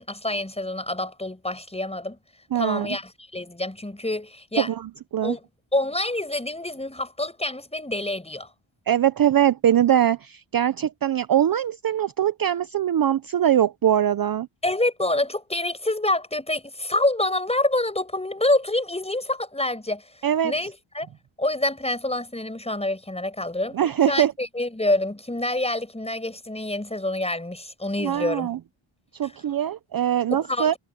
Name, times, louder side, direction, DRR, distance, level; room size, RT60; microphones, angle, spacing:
voice 1, 0.0-2.2 2.5-4.7 5.2-5.4 5.7-8.5 14.6-20.2 20.4-21.1 21.4-23.8 24.1-28.5 29.2-29.3 30.3-30.7, left 1 dB, 10° left, 5.5 m, -27 dB
voice 2, 2.5-3.0 4.6-5.4 8.9-14.5 20.2-20.5 23.7-24.3 28.0-28.6 29.1-30.7, right 10 dB, 45° right, 0.5 m, -22 dB
wide cardioid pair, 115°, 50 cm